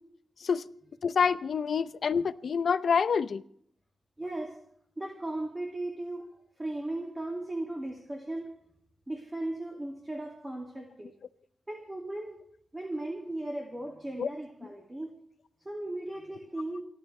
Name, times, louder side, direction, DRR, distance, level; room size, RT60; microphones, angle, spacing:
voice 1, 1.0-3.4 14.2-14.3, left 6 dB, 65° left, 14 dB, 0.7 m, -27 dB
voice 2, 4.2-4.6 5.0-8.5 9.1-11.1 11.7-12.4 12.7-15.1 15.6-16.8, right 1 dB, 15° right, 0 dB, 2.3 m, -37 dB
29.5 x 12.0 x 3.3 m, 0.66 s
wide cardioid pair, 135°, 0 cm